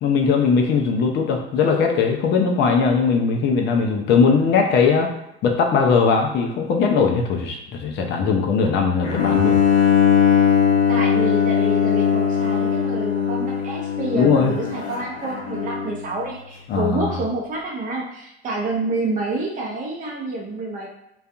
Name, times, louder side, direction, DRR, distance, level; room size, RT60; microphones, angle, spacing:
voice 1, 0.0-5.1 5.4-9.6 14.1-14.5 16.7-17.2, left 5 dB, 35° left, 2 dB, 0.4 m, -19 dB
Bowed string instrument, 9.0-16.0, left 8 dB, 85° left, 0.6 m, -20 dB
voice 2, 10.9-20.9, right 2 dB, 25° right, -1 dB, 0.6 m, -28 dB
2.5 x 2.3 x 2.4 m, 0.83 s
figure-of-eight pair, 65°, 32 cm